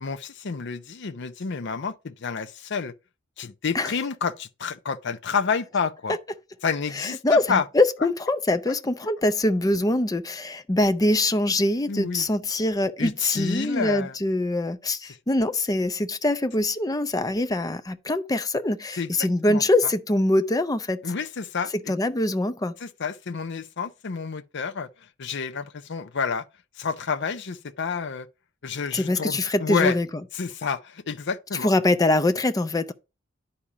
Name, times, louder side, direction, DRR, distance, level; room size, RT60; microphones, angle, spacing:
voice 1, 0.0-2.9 3.4-6.2 6.6-7.7 11.9-12.3 13.0-14.2 19.0-19.1 19.5-19.6 21.0-21.9 22.8-24.9 25.2-26.4 26.8-28.3 28.6-30.0 30.3-31.7, left 5 dB, 60° left, 0.6 m, -29 dB
voice 2, 7.0-21.0 21.9-22.7 28.9-30.1 31.6-32.9, left 2 dB, 20° left, 0.5 m, -23 dB
10.0 x 4.3 x 4.8 m
head